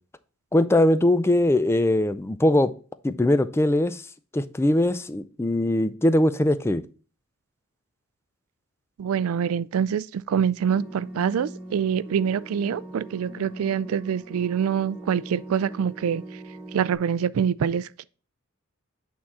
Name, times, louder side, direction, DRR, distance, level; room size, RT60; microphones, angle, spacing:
voice 1, 0.5-2.7 3.0-4.0 4.3-6.8, left 1 dB, 10° left, 0.3 m, -21 dB
voice 2, 9.0-16.2 16.7-18.0, right 7 dB, 80° right, 0.3 m, -25 dB
sound 1, 10.7-16.9, right 2 dB, 5° right, 1.9 m, -41 dB
8.6 x 3.7 x 4.2 m
head